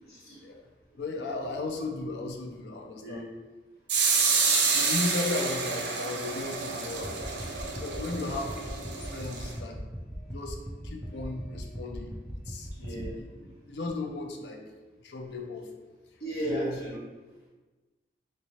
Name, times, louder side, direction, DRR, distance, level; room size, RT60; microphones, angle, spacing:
voice 1, 0.1-0.4 3.0-3.2 12.8-13.4 16.2-17.0, equal, 65° left, -8 dB, 1.4 m, -35 dB
voice 2, 1.0-3.2 4.7-7.1 7.7-8.7 9.0-9.8 10.3-10.6 10.8-12.1 12.5-12.9 13.7-14.6 15.0-15.7 16.1-16.2 16.5-16.8, left 2 dB, 80° left, 3 dB, 0.5 m, -35 dB
sound 1, 3.9-9.5, right 4 dB, 80° right, 0.5 m, -28 dB
sound 2, 6.9-13.2, equal, 5° right, 0.3 m, -40 dB
3.2 x 3.1 x 2.7 m, 1.3 s
head